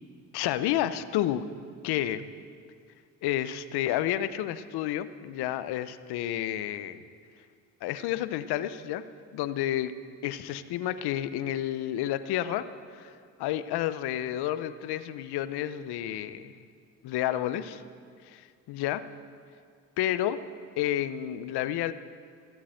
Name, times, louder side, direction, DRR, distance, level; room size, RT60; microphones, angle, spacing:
voice 1, 0.3-1.5 1.8-2.3 3.2-7.0 7.8-9.0 9.3-9.9 10.2-12.7 12.9-16.5 17.0-17.8 18.2-19.0 20.0-20.4 20.8-21.9, left 12 dB, 70° left, 13 dB, 0.8 m, -30 dB
15.0 x 8.2 x 7.8 m, 2.1 s
supercardioid pair, 60°, 40 cm